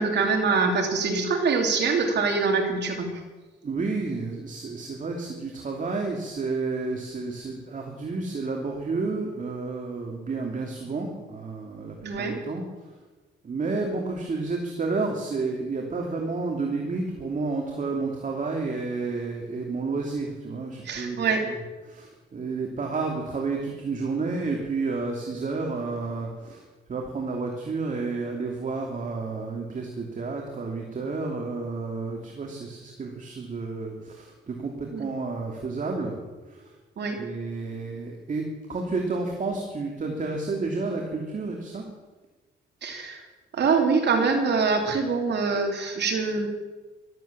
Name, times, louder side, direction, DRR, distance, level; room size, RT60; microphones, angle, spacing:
voice 1, 0.0-3.1 12.0-12.4 20.8-21.5 34.9-35.0 37.0-37.2 42.8-43.2 43.6-46.5, right 4 dB, 60° right, 3 dB, 3.3 m, -24 dB
voice 2, 3.6-12.6 13.4-21.5 21.8-26.6 26.9-36.7 37.2-41.9, right 3 dB, 40° right, 1 dB, 2.8 m, -31 dB
14.0 x 13.0 x 7.4 m, 1.2 s
cardioid pair, 90°, 20 cm